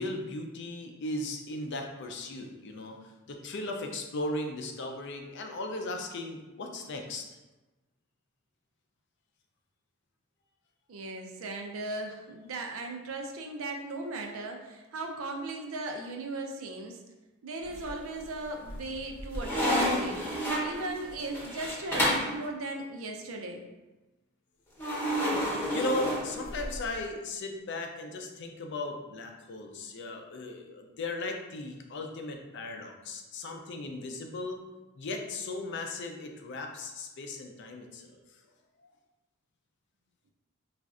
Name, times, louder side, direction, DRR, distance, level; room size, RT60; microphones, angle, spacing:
voice 1, 0.0-7.4 25.7-34.6 35.0-38.2 38.8-38.9, left 2 dB, 60° left, 3 dB, 0.4 m, -37 dB
voice 2, 10.9-17.0 17.4-23.6, right 2 dB, 90° right, 2 dB, 0.5 m, -37 dB
sound 1, 17.7-18.3 18.7-22.4 24.8-26.9, equal, 10° left, 0.8 m, -30 dB
4.0 x 2.4 x 2.4 m, 1.1 s
head